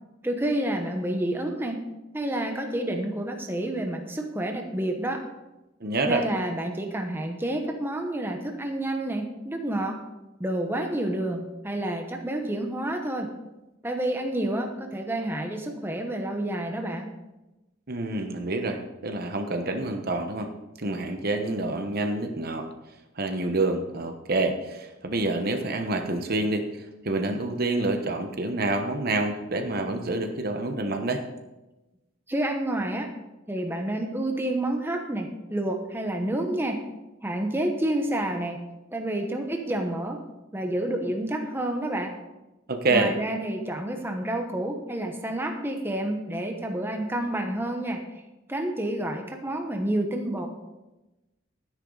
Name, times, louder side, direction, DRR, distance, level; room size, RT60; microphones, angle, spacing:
voice 1, 0.2-1.8 2.1-5.3 6.1-10.0 10.4-13.3 13.8-17.1 32.3-33.1 33.5-36.8 37.2-38.6 38.9-40.2 40.5-42.1 42.9-48.2 48.5-50.5, right 1 dB, 10° right, 3 dB, 1.1 m, -29 dB
voice 2, 5.8-6.2 17.9-20.5 20.8-22.7 23.2-31.2 42.7-43.2, right 2 dB, 50° right, 5 dB, 1.0 m, -27 dB
11.5 x 10.0 x 4.0 m, 1.0 s
head